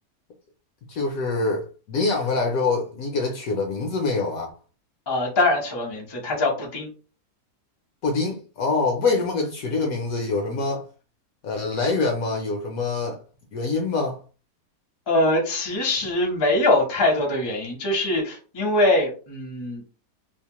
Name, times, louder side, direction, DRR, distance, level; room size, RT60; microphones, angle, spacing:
voice 1, 0.9-4.5 8.0-10.8 11.4-13.2 13.5-14.2, left 3 dB, 70° left, 0.9 m, -25 dB
voice 2, 5.1-6.9 15.1-19.8, left 1 dB, 25° left, 0.5 m, -23 dB
2.8 x 2.0 x 2.9 m
omnidirectional pair, 1.8 m